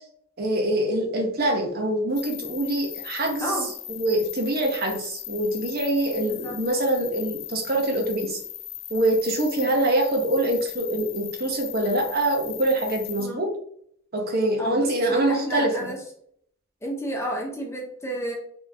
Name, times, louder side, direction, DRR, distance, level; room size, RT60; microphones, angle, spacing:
voice 1, 0.4-3.5 3.9-8.4 8.9-13.5 14.1-15.9, right 1 dB, 50° right, 2 dB, 0.8 m, -24 dB
sound 1, 2.1-13.2, left 11 dB, 85° left, 1.1 m, -38 dB
voice 2, 3.4-3.7 6.3-6.6 9.6-9.7 13.2-13.5 14.6-16.0 16.8-18.3, equal, 15° left, 0 dB, 0.7 m, -31 dB
3.7 x 3.6 x 2.7 m, 0.66 s
head